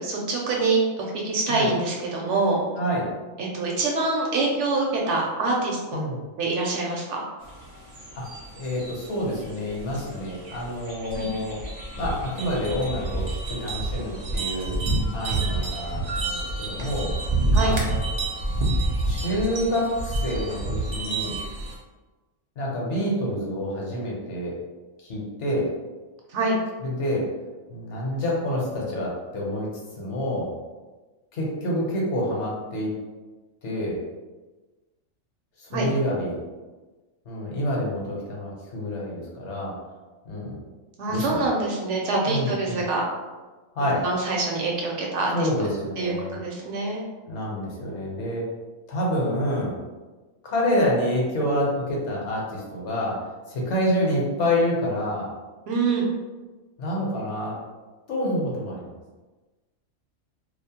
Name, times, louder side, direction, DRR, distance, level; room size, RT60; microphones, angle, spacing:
voice 1, 0.0-2.6 3.4-6.0 6.4-7.2 11.1-11.3 17.5-17.8 26.3-26.5 35.7-35.9 41.0-43.0 44.0-45.5 46.0-47.0 55.7-56.1, right 3 dB, 70° right, -2 dB, 0.8 m, -25 dB
sound 1, 7.4-21.7, right 2 dB, 90° right, 0.3 m, -29 dB
voice 2, 8.5-11.6 12.0-14.7 15.1-17.1 17.6-18.0 19.0-21.4 22.6-24.5 25.1-25.7 26.8-27.3 27.7-29.7 30.0-30.5 31.3-32.9 33.6-34.0 35.6-36.4 37.3-39.7 40.2-40.6 41.1-41.5 42.3-42.8 43.7-44.1 45.3-46.4 47.3-48.4 48.9-49.8 50.4-53.2 53.5-55.3 56.8-57.5 58.1-58.8, equal, 65° left, -3 dB, 1.0 m, -27 dB
2.4 x 2.0 x 2.7 m, 1.2 s
omnidirectional pair, 1.4 m